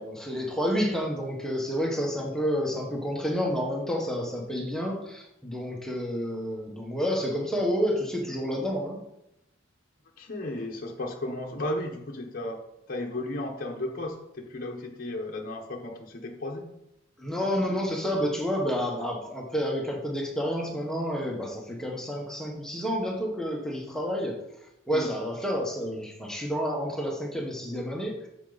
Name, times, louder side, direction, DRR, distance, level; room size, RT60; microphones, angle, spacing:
voice 1, 0.0-9.0 17.2-24.4 24.9-28.3, equal, 5° left, -1 dB, 1.2 m, -29 dB
voice 2, 10.2-12.6 12.9-16.7 24.9-25.1, left 1 dB, 40° left, 0 dB, 1.0 m, -34 dB
8.3 x 6.8 x 4.0 m, 0.84 s
head